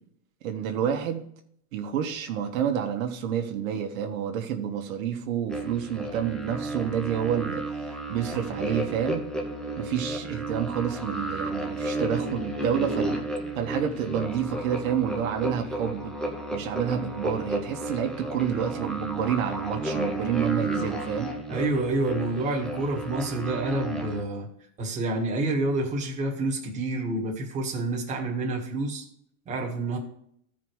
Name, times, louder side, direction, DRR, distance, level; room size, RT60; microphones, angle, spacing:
voice 1, 0.4-1.3 1.7-7.6 8.1-9.3 9.8-13.3 13.5-16.1 16.5-21.3, right 8 dB, 70° right, 4 dB, 1.5 m, -29 dB
sound 1, 5.5-24.2, right 1 dB, ahead, 0.6 m, -33 dB
voice 2, 21.5-24.5 24.8-29.0 29.4-30.0, right 2 dB, 15° right, -1 dB, 1.7 m, -28 dB
14.5 x 5.1 x 4.7 m, 0.69 s
supercardioid pair, 170°, 42 cm